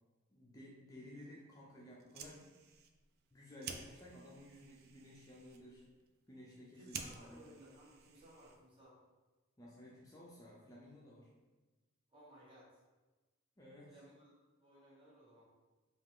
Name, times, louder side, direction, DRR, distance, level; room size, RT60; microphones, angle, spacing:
voice 1, 0.3-2.5 3.3-5.8 6.3-7.4 9.6-11.3 13.6-13.9, left 1 dB, 15° left, -5 dB, 0.5 m, -55 dB
Fire, 1.9-8.8, right 6 dB, 50° right, 0.4 m, -53 dB
voice 2, 6.7-9.0 12.1-12.8 13.9-15.4, right 1 dB, 25° right, -6 dB, 1.2 m, -60 dB
5.1 x 2.4 x 3.6 m, 1.2 s
head